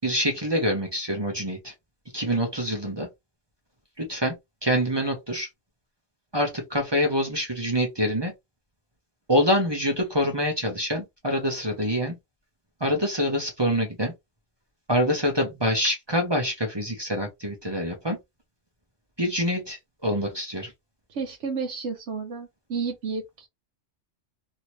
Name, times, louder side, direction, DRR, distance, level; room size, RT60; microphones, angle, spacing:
voice 1, 0.0-1.7 2.1-3.1 4.0-4.3 4.6-5.5 6.3-8.3 9.3-12.1 12.8-14.1 14.9-18.2 19.2-20.7, equal, 25° right, 0.7 m, -25 dB
voice 2, 21.1-23.5, right 5 dB, 70° right, 1.0 m, -31 dB
2.8 x 2.8 x 3.0 m
omnidirectional pair, 1.3 m